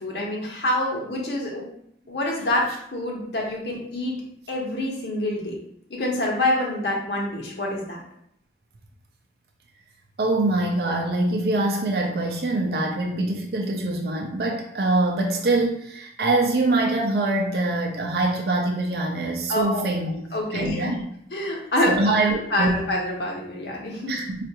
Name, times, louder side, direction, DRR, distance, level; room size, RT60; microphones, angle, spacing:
voice 1, 0.0-1.6 2.1-2.7 2.9-4.1 4.5-5.6 5.9-8.0 19.5-19.9 20.3-20.9 21.3-22.2 22.5-24.1, left 1 dB, 70° left, -2 dB, 0.9 m, -26 dB
voice 2, 10.2-20.2 20.5-21.0 21.9-22.8 24.1-24.4, right 2 dB, 60° right, 1 dB, 0.4 m, -24 dB
4.4 x 2.4 x 2.8 m, 0.71 s
head